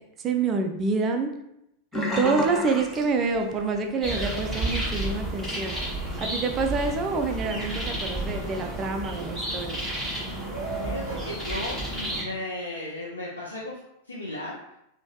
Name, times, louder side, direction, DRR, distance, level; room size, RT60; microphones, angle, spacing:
voice 1, 0.2-1.3 1.9-5.8 6.2-9.8, right 4 dB, 25° right, 4 dB, 0.3 m, -27 dB
Sink (filling or washing), 1.9-3.9 4.2-4.5 4.9-5.0, left 2 dB, 15° left, 0.7 m, -31 dB
sound 1, 4.0-12.2, right 1 dB, ahead, 1.1 m, -31 dB
voice 2, 10.8-14.6, left 1 dB, 80° left, -5 dB, 0.4 m, -35 dB
3.0 x 2.1 x 2.7 m, 0.81 s
figure-of-eight pair, 90°, 0 cm